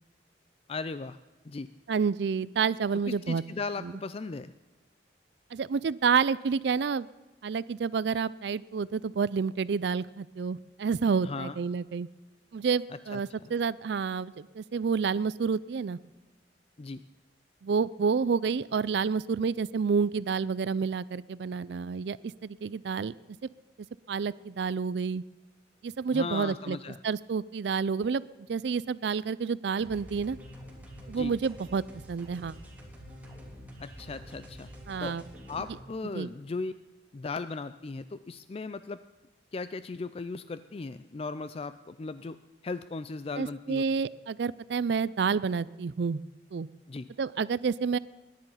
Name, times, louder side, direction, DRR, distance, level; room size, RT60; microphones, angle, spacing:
voice 1, 0.7-1.2 1.4-1.7 3.1-4.5 11.2-11.5 13.1-13.5 16.8-17.0 26.1-27.0 31.1-31.3 33.8-34.7 35.0-35.2 35.5-36.7 37.1-39.0 39.5-43.8 46.9-47.1, left 3 dB, 35° left, 13 dB, 0.4 m, -37 dB
voice 2, 1.9-3.4 3.8-3.9 5.5-7.1 7.4-12.1 12.5-16.0 17.6-22.2 22.4-23.1 24.1-25.2 25.8-26.8 27.0-28.2 28.5-30.4 31.1-31.8 32.1-32.6 34.9-35.2 36.1-36.3 43.4-46.2 46.5-46.7 47.2-48.0, right 5 dB, 65° right, 19 dB, 0.4 m, -29 dB
sound 1, 29.8-35.8, equal, 10° right, 3.2 m, -47 dB
21.0 x 10.5 x 5.6 m, 1.2 s
head